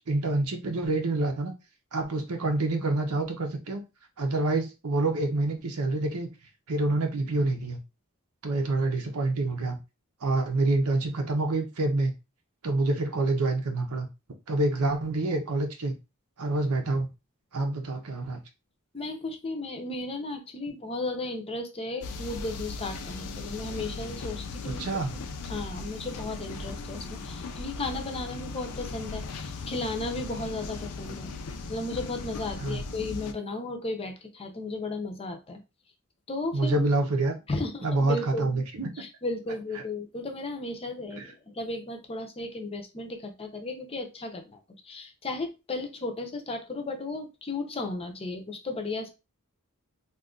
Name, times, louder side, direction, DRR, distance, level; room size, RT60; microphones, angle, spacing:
voice 1, 0.1-1.5 1.9-3.8 4.2-6.3 6.7-7.8 8.4-9.8 10.2-12.1 12.6-14.1 14.5-15.9 16.4-17.1 17.5-18.4 24.7-25.2 32.6-32.8 36.5-37.3 37.8-38.9 41.2-41.3, right 2 dB, 80° right, 5 dB, 0.8 m, -27 dB
voice 2, 18.9-24.8 25.5-31.3 31.7-35.6 36.3-36.9 37.5-38.6 39.0-49.1, left 2 dB, 25° left, 4 dB, 0.6 m, -35 dB
sound 1, 22.0-33.3, left 3 dB, 85° left, 0.5 m, -38 dB
2.6 x 2.4 x 3.7 m, 0.27 s
head